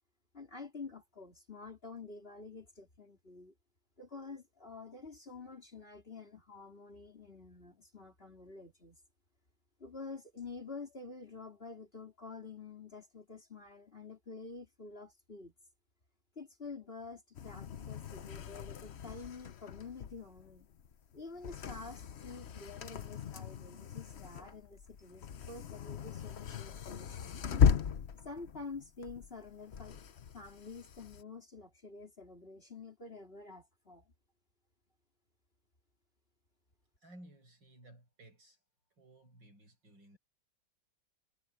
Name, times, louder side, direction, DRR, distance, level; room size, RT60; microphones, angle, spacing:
voice 1, 0.3-3.5 4.0-9.0 9.8-15.5 16.4-20.7 21.1-27.4 28.2-30.0 30.3-34.0, left 4 dB, 30° left, 4.2 m, -48 dB
sound 1, 17.3-31.2, left 7 dB, 50° left, 0.8 m, -36 dB
voice 2, 37.0-38.6 39.0-40.2, right 1 dB, 80° right, 9.0 m, -57 dB
omnidirectional pair, 2.0 m